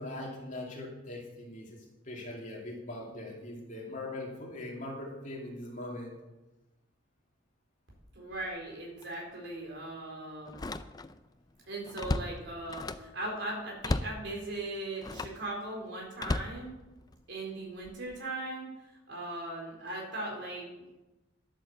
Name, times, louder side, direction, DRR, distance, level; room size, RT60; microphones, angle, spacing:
voice 1, 0.0-1.8 2.0-6.2, left 1 dB, 40° left, -2 dB, 2.6 m, -41 dB
voice 2, 8.1-10.7 11.7-16.7 17.3-18.7 19.1-20.6, right 2 dB, 65° right, -2 dB, 4.5 m, -39 dB
Slam, 8.3-8.6 9.0-9.1 10.5-11.3 11.6-13.2 13.8-14.2 15.0-15.4 16.2-17.2 17.8-18.1, left 2 dB, 20° left, 0.4 m, -35 dB
11.0 x 8.5 x 6.7 m, 1.0 s
head